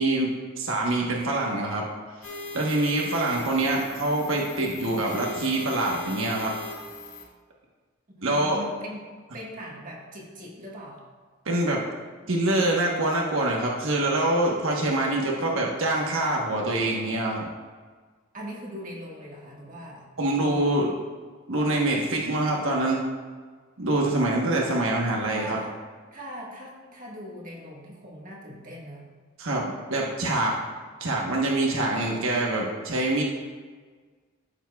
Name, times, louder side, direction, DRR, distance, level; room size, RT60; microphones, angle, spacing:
voice 1, 0.0-1.8 2.2-6.5 8.2-8.6 11.4-11.8 12.3-17.5 20.2-20.9 21.5-23.0 23.8-25.6 29.4-30.6 31.0-33.2, right 2 dB, 75° right, -1 dB, 1.1 m, -25 dB
sound 1, 2.2-7.2, left 2 dB, 65° left, 1.9 m, -39 dB
voice 2, 8.1-11.0 18.3-20.1 20.4-20.9 21.6-22.0 25.3-25.7 26.1-29.0, equal, 40° right, -3 dB, 1.5 m, -41 dB
13.5 x 7.3 x 2.3 m, 1.5 s
head